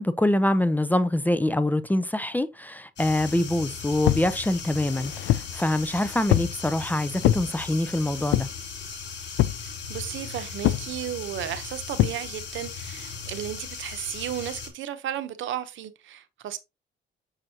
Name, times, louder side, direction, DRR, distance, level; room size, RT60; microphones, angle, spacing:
voice 1, 0.0-8.5, left 1 dB, 10° left, 0.5 m, -25 dB
sound 1, 3.0-14.7, left 6 dB, 60° left, 3.0 m, -38 dB
sound 2, 4.0-4.3 4.9-5.6 6.3-6.6 7.2-7.5 8.3-8.6 9.4-9.7 10.6-10.9 12.0-12.2, left 15 dB, 90° left, 0.4 m, -23 dB
voice 2, 9.7-16.6, right 11 dB, 75° right, 0.9 m, -34 dB
6.4 x 6.1 x 2.8 m
cardioid pair, 90°, 20 cm